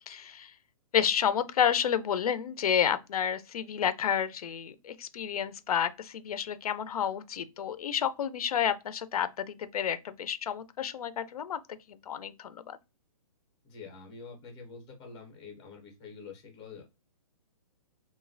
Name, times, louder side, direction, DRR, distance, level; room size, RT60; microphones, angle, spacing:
voice 1, 0.1-0.5 0.9-11.6 11.9-12.8, left 8 dB, 85° left, 0.4 m, -30 dB
voice 2, 13.6-16.8, left 5 dB, 15° left, 0.5 m, -46 dB
3.0 x 2.1 x 2.5 m
hypercardioid pair, 180°, 19 cm